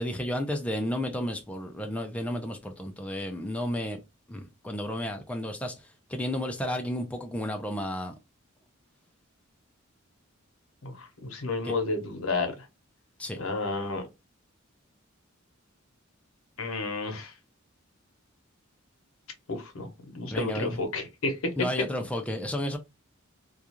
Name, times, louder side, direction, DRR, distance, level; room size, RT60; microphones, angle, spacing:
voice 1, 0.0-4.0 4.3-5.7 6.1-8.1 11.6-11.7 13.2-13.4 20.3-20.7 21.6-22.8, left 1 dB, 5° left, 0.4 m, -32 dB
voice 2, 10.8-12.5 13.4-14.0 16.6-17.3 19.5-21.5, left 3 dB, 85° left, 0.8 m, -31 dB
2.4 x 2.3 x 2.9 m
head